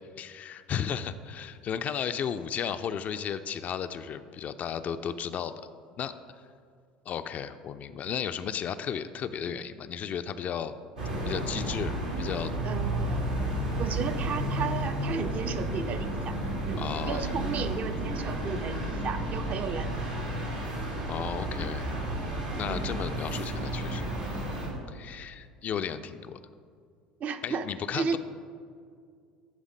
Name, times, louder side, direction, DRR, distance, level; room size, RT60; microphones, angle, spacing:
voice 1, 0.2-5.7 6.0-6.1 7.1-10.7 11.3-12.5 16.8-17.3 21.1-21.9 22.6-24.1 24.9-26.4 27.4-28.2, left 8 dB, 40° left, 10 dB, 0.3 m, -34 dB
sound 1, 11.0-24.7, right 1 dB, 85° right, 1.6 m, -32 dB
sound 2, 11.8-23.9, left 2 dB, 85° left, 1.4 m, -45 dB
voice 2, 12.6-13.5 13.8-16.3 16.7-19.9 22.7-23.0 27.2-27.7 27.9-28.2, right 6 dB, 40° right, 9 dB, 0.5 m, -34 dB
10.5 x 3.6 x 5.2 m, 2.2 s
figure-of-eight pair, 65°, 4 cm